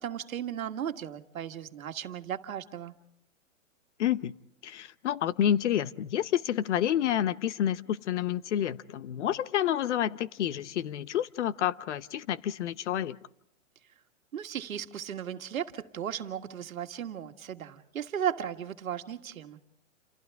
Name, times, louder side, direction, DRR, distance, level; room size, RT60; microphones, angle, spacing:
voice 1, 0.0-2.9 14.3-19.6, right 9 dB, 85° right, 1.7 m, -36 dB
voice 2, 4.0-4.3 4.6-13.2, left 10 dB, 60° left, 0.8 m, -29 dB
28.5 x 28.0 x 3.5 m
hypercardioid pair, 155°, 40 cm